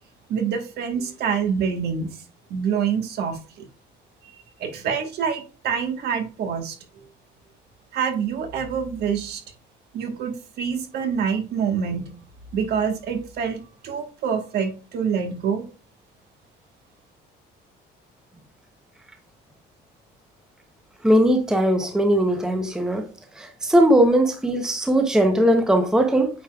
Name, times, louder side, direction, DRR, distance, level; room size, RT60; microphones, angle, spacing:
voice 1, 0.3-2.2 2.5-3.7 4.2-7.1 7.9-9.4 9.9-12.0 12.5-15.6, right 7 dB, 60° right, 1.3 m, -26 dB
voice 2, 21.0-23.0 23.4-26.3, right 1 dB, 5° right, 0.7 m, -19 dB
8.6 x 4.8 x 2.3 m
cardioid pair, 160°, 19 cm